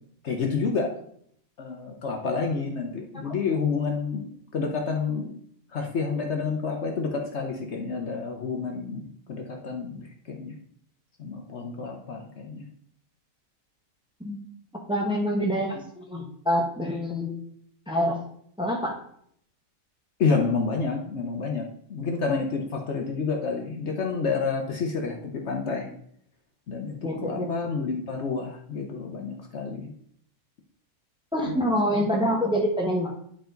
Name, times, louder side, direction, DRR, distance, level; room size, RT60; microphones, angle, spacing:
voice 1, 0.2-0.9 1.6-4.3 4.5-5.3 5.7-10.6 11.2-12.7 20.2-25.9 26.7-26.9 27.2-29.9 31.4-31.5 31.9-32.1, left 4 dB, 55° left, 2 dB, 1.1 m, -29 dB
voice 2, 14.9-17.4 17.9-18.2 18.6-19.0 27.0-27.5 31.3-33.1, equal, 5° right, -1 dB, 1.1 m, -26 dB
10.0 x 4.7 x 3.9 m, 0.67 s
omnidirectional pair, 1.5 m